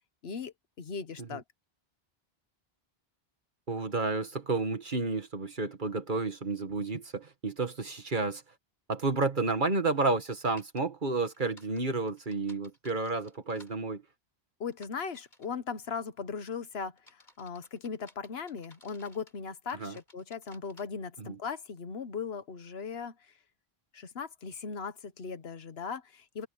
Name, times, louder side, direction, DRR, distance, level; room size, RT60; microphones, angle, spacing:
voice 1, 0.2-1.4 14.6-23.1 23.9-26.5, left 5 dB, 75° left, 1.4 m, -38 dB
voice 2, 3.7-8.4 8.9-14.0 19.7-20.0 21.2-21.4, right 3 dB, 50° right, 2.0 m, -31 dB
sound 1, 10.6-10.8 11.2-13.7 14.7-15.5 16.1-16.4 17.0-19.4 19.7-20.8, left 1 dB, 50° left, 4.6 m, -58 dB
omnidirectional pair, 1.1 m